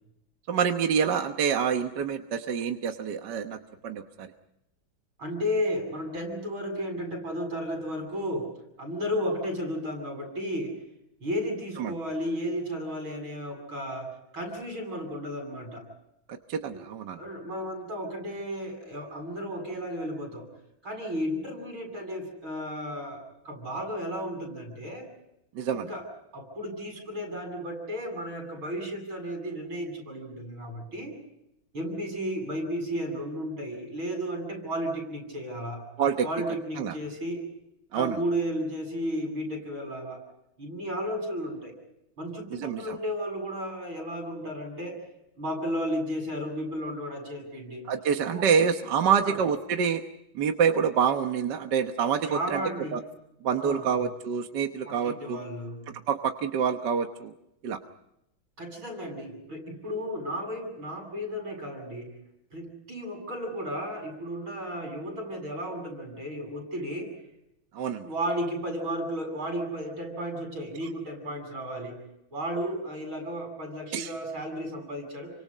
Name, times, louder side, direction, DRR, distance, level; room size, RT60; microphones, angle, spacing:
voice 1, 0.5-3.6 3.8-4.3 11.8-11.9 16.5-17.2 25.5-25.9 36.0-36.3 36.8-36.9 37.9-38.2 42.5-43.0 47.9-50.0 50.3-52.6 52.9-53.0 53.4-55.4 56.1-57.3 57.6-57.8 67.7-68.1 73.9-74.1, right 7 dB, 60° right, 6 dB, 1.7 m, -27 dB
voice 2, 5.2-8.5 8.8-10.8 11.2-15.9 16.7-16.8 17.2-20.5 20.8-25.1 25.7-26.0 26.3-31.1 31.7-35.9 36.2-37.5 37.9-40.2 40.6-41.7 42.2-45.0 45.4-47.9 48.2-48.5 49.0-49.4 52.2-53.0 53.6-54.0 54.9-55.9 58.6-62.1 62.5-67.2 68.0-72.0 72.3-75.3, equal, 85° right, 2 dB, 8.9 m, -33 dB
29.5 x 25.5 x 5.5 m, 0.85 s
omnidirectional pair, 2.2 m